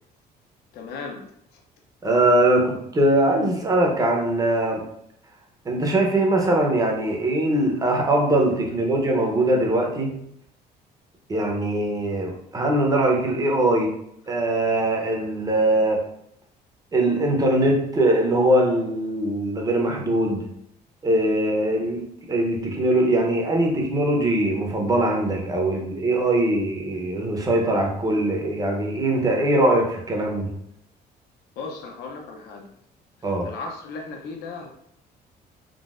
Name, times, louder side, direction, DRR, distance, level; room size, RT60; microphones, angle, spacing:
voice 1, 0.7-1.3 1.5-1.6 31.6-32.7 33.4-34.7, left 4 dB, 75° left, 2 dB, 0.6 m, -36 dB
voice 2, 2.0-4.8 5.6-10.1 11.3-13.9 14.3-16.0 16.9-20.4 21.0-22.0 22.3-30.5 33.2-33.5, right 1 dB, 20° right, 0 dB, 0.7 m, -21 dB
3.7 x 2.1 x 2.4 m, 0.74 s
cardioid pair, 110°, 17 cm